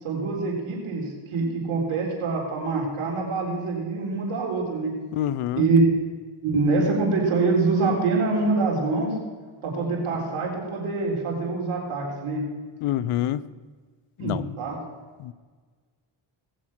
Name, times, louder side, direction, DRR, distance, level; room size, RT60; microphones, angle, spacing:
voice 1, 0.0-4.9 5.5-5.9 6.4-9.1 9.6-12.4 14.2-14.8, right 3 dB, 85° right, -1 dB, 4.0 m, -25 dB
voice 2, 5.1-5.7 12.8-13.4 14.2-14.5 15.2-15.3, left 12 dB, 90° left, 16 dB, 0.7 m, -26 dB
18.5 x 7.4 x 6.2 m, 1.4 s
cardioid pair, 70°, 49 cm